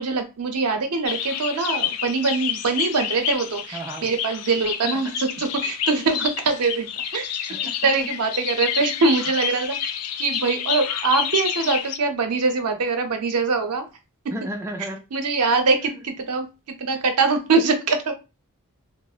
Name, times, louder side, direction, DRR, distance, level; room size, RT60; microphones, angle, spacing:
voice 1, 0.0-6.9 7.1-7.5 7.8-9.9 10.2-13.8 15.1-16.4 16.8-18.1, right 4 dB, 90° right, 6 dB, 0.6 m, -23 dB
sound 1, 1.0-12.0, left 9 dB, 85° left, 0.4 m, -29 dB
voice 2, 3.7-4.1 4.8-5.1 7.5-8.1 14.3-15.0 15.9-16.0, right 1 dB, 10° right, 2 dB, 0.4 m, -33 dB
3.5 x 2.0 x 2.3 m, 0.28 s
head